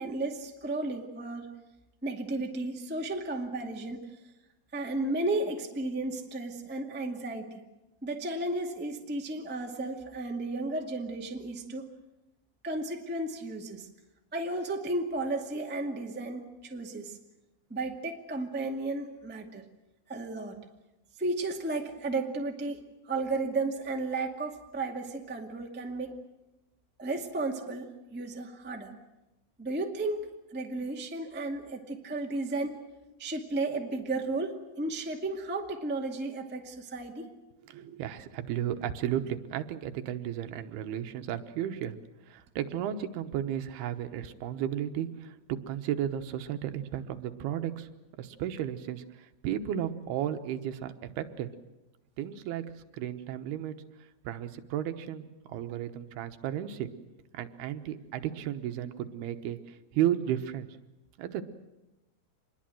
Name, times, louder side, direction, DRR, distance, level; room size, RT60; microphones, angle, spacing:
voice 1, 0.0-1.5 2.0-4.0 4.7-7.6 8.0-11.9 12.6-13.9 14.3-17.2 17.7-19.6 20.1-20.6 21.2-26.2 27.0-28.9 29.6-32.8 33.2-37.3, right 2 dB, 5° right, 1 dB, 0.8 m, -34 dB
voice 2, 37.7-42.0 42.3-47.9 48.2-51.5 52.2-52.7 52.9-53.7 54.2-56.9 57.3-60.7 61.2-61.4, right 10 dB, 80° right, 8 dB, 3.1 m, -34 dB
26.0 x 21.5 x 7.7 m, 0.99 s
omnidirectional pair, 4.5 m